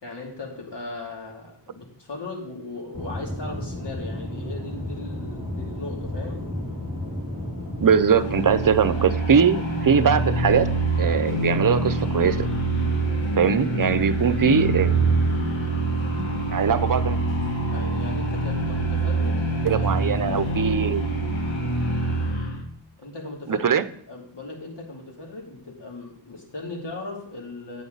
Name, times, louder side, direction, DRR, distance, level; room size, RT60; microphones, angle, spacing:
voice 1, 0.0-6.5 16.7-17.0 17.7-19.8 20.2-20.7 23.0-27.8, left 2 dB, 65° left, -1 dB, 2.9 m, -38 dB
Aircraft / Engine, 2.9-7.9, left 1 dB, 45° left, 4.4 m, -32 dB
voice 2, 7.8-10.7 11.0-12.5 13.3-14.9 16.2-16.3 16.5-17.2 19.6-21.0 23.5-23.8, right 7 dB, 45° right, 13 dB, 0.7 m, -21 dB
sound 1, 7.9-22.6, right 2 dB, 90° left, 1.6 m, -25 dB
9.1 x 8.9 x 4.0 m, 0.63 s
cardioid pair, 45°, 45 cm